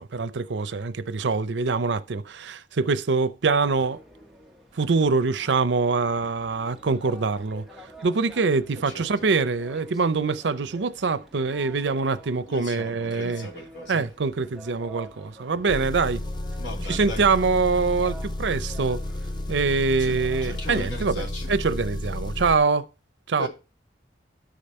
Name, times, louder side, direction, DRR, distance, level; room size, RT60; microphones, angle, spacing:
voice 1, 0.0-4.0 4.7-13.5 13.9-16.2 16.9-19.0 19.5-22.9 23.3-23.5, right 4 dB, 85° right, 0.6 m, -24 dB
sound 1, 3.5-21.1, right 1 dB, ahead, 1.1 m, -49 dB
voice 2, 8.7-9.1 12.5-14.1 16.6-17.2 20.0-21.5 23.4-23.5, equal, 85° left, 3.0 m, -37 dB
Engine, 15.7-22.6, left 1 dB, 25° left, 0.5 m, -32 dB
13.0 x 5.2 x 4.2 m
head